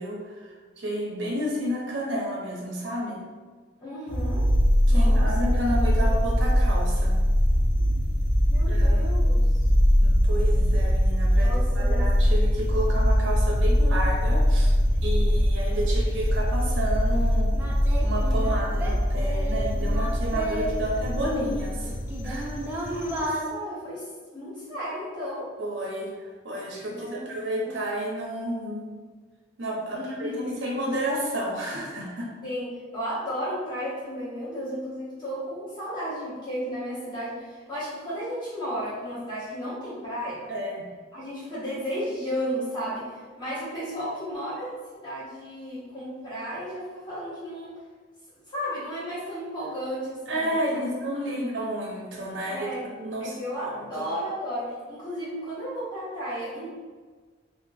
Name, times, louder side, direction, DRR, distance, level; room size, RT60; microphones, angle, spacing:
voice 1, 0.0-3.2 4.9-7.1 8.7-9.1 10.0-14.7 15.0-17.5 18.0-21.9 22.2-22.5 25.6-29.0 29.6-30.3 30.6-32.3 40.5-40.8 50.3-52.7 53.0-54.1, equal, 75° right, -2 dB, 0.8 m, -31 dB
voice 2, 3.8-4.4 4.9-5.3 5.9-6.1 7.8-7.9 8.5-9.4 11.4-12.1 22.9-25.5 26.9-27.3 27.6-27.7 29.9-30.5 32.4-40.5 41.1-47.7 48.5-50.8 52.5-52.8 53.2-56.7, equal, 25° left, -10 dB, 1.2 m, -34 dB
sound 1, 4.1-23.3, equal, 90° left, 0.5 m, -22 dB
Singing, 16.9-17.0 17.5-20.7 21.1-23.4, right 1 dB, 10° right, 0.4 m, -33 dB
2.9 x 2.9 x 2.5 m, 1.5 s
head